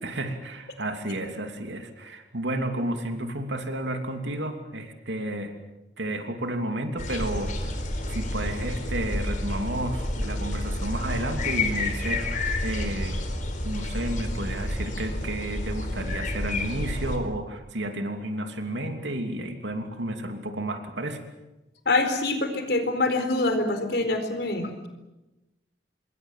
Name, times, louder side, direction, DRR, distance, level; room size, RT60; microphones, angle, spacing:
voice 1, 0.0-5.5 6.0-7.7 8.1-13.2 13.6-21.2, right 1 dB, 90° right, 5 dB, 2.9 m, -32 dB
sound 1, 7.0-17.2, left 1 dB, 45° left, 4.2 m, -30 dB
voice 2, 21.9-24.9, left 2 dB, 65° left, 7 dB, 4.3 m, -25 dB
26.5 x 22.5 x 7.5 m, 1.0 s
head